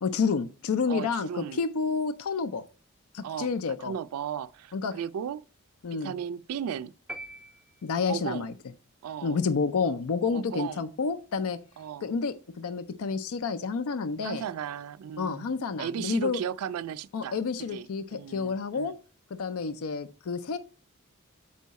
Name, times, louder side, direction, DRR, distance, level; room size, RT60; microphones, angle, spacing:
voice 1, 0.0-2.6 3.1-3.9 4.7-5.0 5.8-6.1 7.8-8.5 9.2-11.6 12.0-14.4 15.2-16.4 17.1-18.9 19.3-20.6, left 5 dB, 80° left, 0.4 m, -29 dB
voice 2, 0.9-1.6 3.2-3.5 3.8-5.4 5.9-6.9 8.1-8.5 9.0-9.4 10.3-10.9 11.8-12.1 14.2-17.4 17.7-19.0, right 8 dB, 85° right, 0.3 m, -36 dB
sound 1, 7.1-8.3, right 1 dB, 5° right, 0.3 m, -43 dB
7.4 x 4.6 x 4.0 m
head